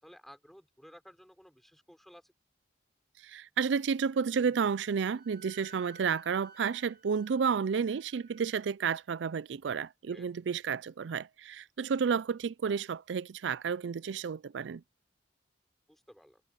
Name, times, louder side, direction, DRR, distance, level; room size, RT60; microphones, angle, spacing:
voice 1, 0.0-2.3 10.1-10.3 15.9-16.4, equal, ahead, 5.2 m, -55 dB
voice 2, 3.2-14.8, right 6 dB, 85° right, 0.4 m, -31 dB
Wind instrument woodwind instrument, 4.3-8.7, right 3 dB, 55° right, 4.2 m, -56 dB
head